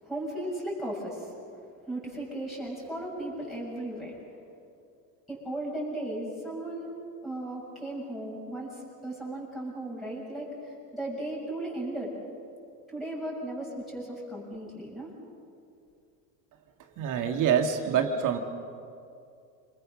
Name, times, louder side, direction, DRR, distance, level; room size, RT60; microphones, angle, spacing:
voice 1, 0.0-1.3 1.6-4.1 5.3-6.9 7.2-12.2 12.9-15.1, right 1 dB, ahead, -5 dB, 6.5 m, -36 dB
voice 2, 17.0-18.4, right 7 dB, 50° right, 5 dB, 2.1 m, -26 dB
27.0 x 20.5 x 6.4 m, 2.5 s
supercardioid pair, 115°, 39 cm